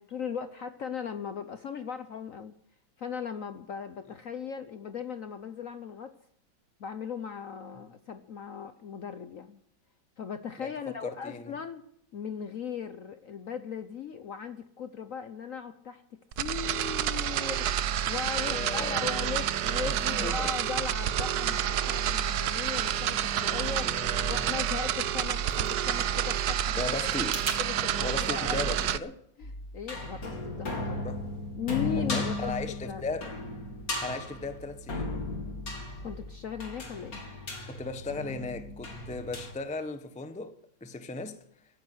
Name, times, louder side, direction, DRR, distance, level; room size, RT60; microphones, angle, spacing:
voice 1, 0.0-2.5 3.0-6.2 6.8-9.6 10.2-11.8 12.1-16.0 16.3-17.7 18.1-23.9 24.3-26.8 27.6-28.7 29.4-31.2 31.6-33.0 36.0-37.2, left 7 dB, 60° left, 0.9 m, -38 dB
voice 2, 10.6-11.5 18.5-19.0 19.9-20.5 23.8-24.5 26.7-27.5 28.0-29.2 31.0-31.2 32.0-33.3 34.0-35.3 37.7-41.4, left 3 dB, 10° left, 0.4 m, -37 dB
sound 1, 16.3-29.0, right 10 dB, 65° right, 1.0 m, -29 dB
sound 2, 25.0-27.6, right 3 dB, 45° right, 3.6 m, -41 dB
sound 3, 29.4-39.5, left 2 dB, 45° left, 3.2 m, -36 dB
15.0 x 9.7 x 7.9 m
omnidirectional pair, 2.2 m